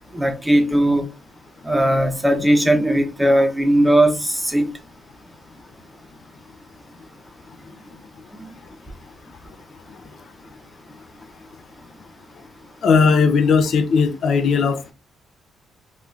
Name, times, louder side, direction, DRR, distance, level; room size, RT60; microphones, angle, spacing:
voice 1, 0.1-1.1 1.6-4.6 8.4-8.5, right 1 dB, 5° right, 0.6 m, -18 dB
voice 2, 12.8-14.9, left 5 dB, 65° left, 0.4 m, -17 dB
3.4 x 2.3 x 2.5 m
cardioid pair, 90°, 0 cm